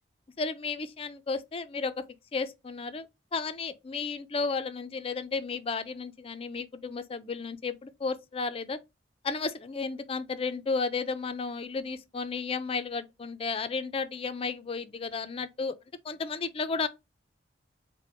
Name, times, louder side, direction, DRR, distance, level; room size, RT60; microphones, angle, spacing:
voice 1, 0.4-1.9 2.3-3.1 3.3-8.8 9.2-15.7 16.0-16.9, left 4 dB, 35° left, 0.4 m, -33 dB
4.3 x 2.1 x 3.7 m
head